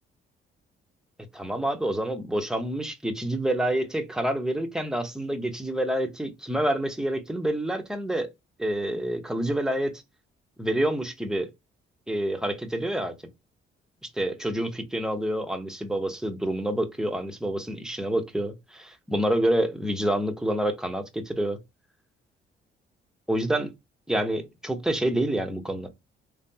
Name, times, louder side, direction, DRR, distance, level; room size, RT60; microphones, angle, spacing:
voice 1, 1.3-8.3 8.6-9.9 10.6-11.5 12.1-13.1 14.0-21.6 23.3-23.7 24.1-25.9, right 1 dB, 5° right, 0.8 m, -27 dB
3.3 x 2.1 x 2.7 m
cardioid pair, 90°, 20 cm